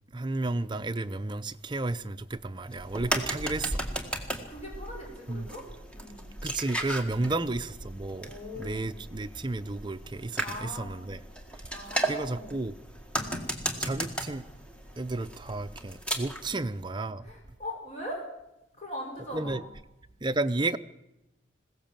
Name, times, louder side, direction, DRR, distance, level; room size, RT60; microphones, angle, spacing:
voice 1, 0.1-3.8 5.3-5.5 6.4-11.2 12.1-12.7 13.8-14.4 15.0-17.3 19.3-19.6 20.2-20.8, right 2 dB, 25° right, 0.6 m, -32 dB
sound 1, 2.7-16.5, right 1 dB, 5° left, 1.8 m, -36 dB
voice 2, 4.5-6.3 7.0-7.4 8.2-8.9 10.4-11.0 11.7-12.6 13.2-13.4 16.4-16.6 17.2-18.3 18.7-19.6, left 1 dB, 35° left, 5.4 m, -41 dB
21.0 x 16.5 x 7.5 m
head